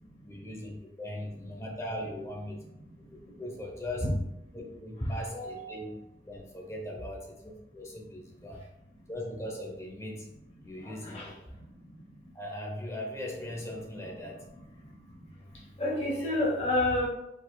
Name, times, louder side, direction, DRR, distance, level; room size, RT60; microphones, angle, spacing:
voice 1, 0.2-2.6 3.4-4.1 4.5-8.6 9.1-10.3 10.6-11.3 12.3-14.5, left 1 dB, 15° left, -1 dB, 0.8 m, -39 dB
voice 2, 10.8-11.3 15.8-17.1, left 1 dB, 35° left, -5 dB, 1.2 m, -28 dB
4.9 x 4.2 x 2.3 m, 0.88 s
head